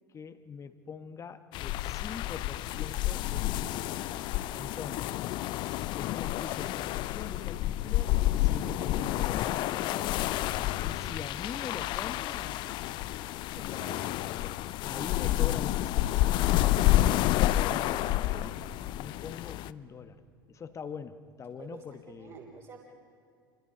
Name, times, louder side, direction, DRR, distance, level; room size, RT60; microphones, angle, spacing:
voice 1, 0.1-4.1 4.5-5.2 5.9-10.2 10.8-12.6 13.6-18.6 19.0-20.2 20.5-22.4, left 6 dB, 25° left, 11 dB, 1.2 m, -44 dB
sound 1, 1.5-19.7, left 15 dB, 45° left, 0.5 m, -29 dB
voice 2, 10.6-11.2 13.5-14.2 21.6-22.8, right 5 dB, 35° right, -2 dB, 3.2 m, -49 dB
28.5 x 23.5 x 5.0 m, 2.4 s
figure-of-eight pair, 75°, 11 cm